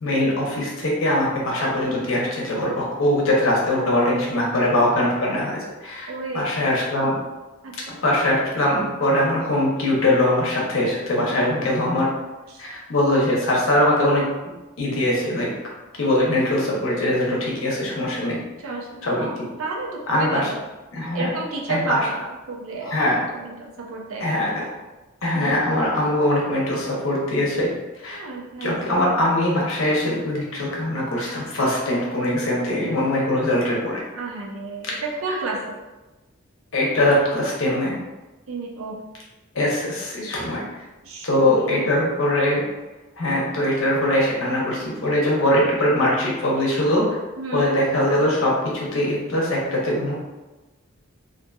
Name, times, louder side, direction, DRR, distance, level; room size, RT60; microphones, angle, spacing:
voice 1, 0.0-7.2 7.9-12.1 12.6-14.3 14.8-15.5 16.0-18.4 19.0-19.3 20.1-20.5 20.9-21.3 21.7-22.0 22.8-23.2 24.2-24.5 25.2-27.7 28.0-28.2 28.6-34.0 36.7-37.9 39.5-40.6 41.2-42.6 43.2-47.0 47.5-50.1, left 1 dB, 70° left, -4 dB, 0.7 m, -22 dB
voice 2, 3.7-4.5 6.1-6.5 7.6-8.0 11.3-11.6 12.5-12.6 18.6-20.6 21.1-23.1 23.3-24.6 25.3-25.6 28.1-28.8 34.1-35.8 38.5-39.0 41.0-41.9 47.4-47.7, right 3 dB, 75° right, -1 dB, 0.5 m, -31 dB
2.6 x 2.6 x 2.3 m, 1.1 s
head